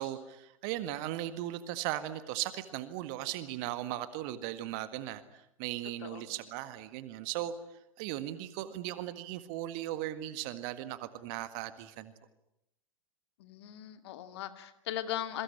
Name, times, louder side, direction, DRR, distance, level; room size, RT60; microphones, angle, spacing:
voice 1, 0.0-7.5 8.0-12.1, right 14 dB, 40° right, 12 dB, 1.8 m, -37 dB
voice 2, 13.4-15.4, left 12 dB, 50° left, 9 dB, 2.5 m, -38 dB
27.5 x 23.0 x 8.9 m, 0.81 s
figure-of-eight pair, 95°, 17 cm